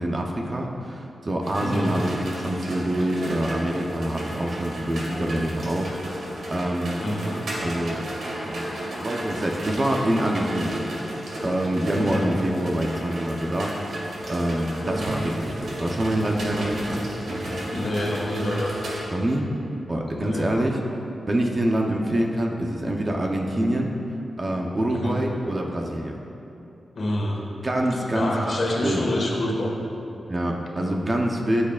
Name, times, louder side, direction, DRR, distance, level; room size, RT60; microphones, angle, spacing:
voice 1, 0.0-7.0 7.6-8.6 9.0-11.1 11.4-17.0 19.1-19.5 19.9-20.8 21.3-23.9 24.4-26.2 27.6-29.0 30.3-31.6, right 1 dB, 30° right, 1 dB, 0.7 m, -26 dB
sound 1, 1.4-19.1, right 1 dB, 75° right, 2.0 m, -33 dB
voice 2, 1.6-1.9 7.0-7.3 11.9-12.3 14.8-15.0 17.7-18.7 20.2-20.6 24.9-25.2 26.9-27.4 28.1-29.7, left 1 dB, 50° left, -2 dB, 1.6 m, -27 dB
14.5 x 7.4 x 2.4 m, 2.8 s
wide cardioid pair, 140°, 0 cm